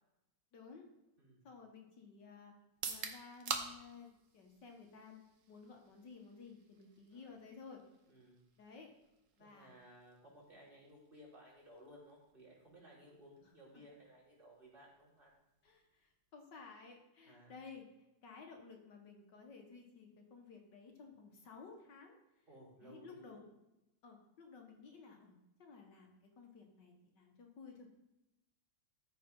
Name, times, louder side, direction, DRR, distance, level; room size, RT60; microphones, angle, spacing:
voice 1, 0.5-0.9 1.4-2.5 2.8-5.2 5.5-7.8 8.6-8.9 9.4-9.7 15.6-17.9 18.2-22.2 22.8-23.5 24.0-27.9, left 5 dB, 65° left, 2 dB, 2.0 m, -55 dB
sound 1, 2.7-16.5, right 5 dB, 50° right, 1.2 m, -50 dB
voice 2, 8.1-8.4 9.4-15.3 17.3-17.6 22.5-23.4, equal, 25° right, -5 dB, 3.9 m, -59 dB
13.5 x 5.1 x 5.3 m, 0.96 s
omnidirectional pair, 2.0 m